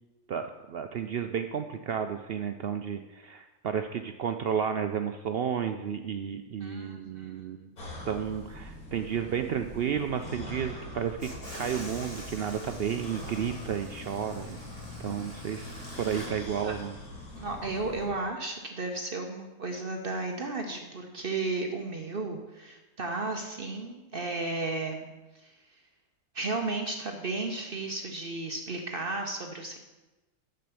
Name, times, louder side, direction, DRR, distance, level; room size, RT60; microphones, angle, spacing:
voice 1, 0.3-7.7 8.1-11.3 11.5-14.6 15.0-17.0, right 8 dB, 70° right, 7 dB, 0.5 m, -32 dB
voice 2, 6.6-7.4 16.0-16.3 16.6-16.7 17.4-25.1 25.4-25.5 26.3-29.8, right 3 dB, 45° right, 3 dB, 0.9 m, -34 dB
sound 1, 7.8-18.1, left 1 dB, 85° left, 2.4 m, -43 dB
sound 2, 11.2-16.3, left 1 dB, 30° left, 2.9 m, -44 dB
7.6 x 6.7 x 6.8 m, 1.1 s
omnidirectional pair, 1.5 m